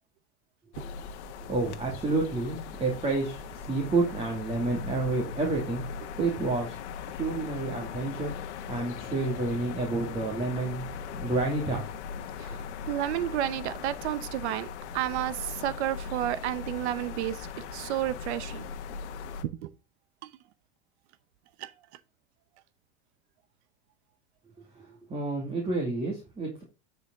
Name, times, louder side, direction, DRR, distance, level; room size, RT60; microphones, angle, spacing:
sound 1, 0.7-19.4, left 6 dB, 80° left, 1.3 m, -39 dB
voice 1, 1.5-5.8 6.2-6.8 7.1-8.4 8.7-10.9 11.1-11.9 24.7-26.6, right 3 dB, 15° right, 2.4 m, -29 dB
voice 2, 12.9-14.7 14.9-17.5 17.7-18.6 19.4-19.7 20.2-20.3 21.6-21.7, right 13 dB, 75° right, 0.8 m, -31 dB
9.5 x 5.1 x 3.8 m
supercardioid pair, 130°, 34 cm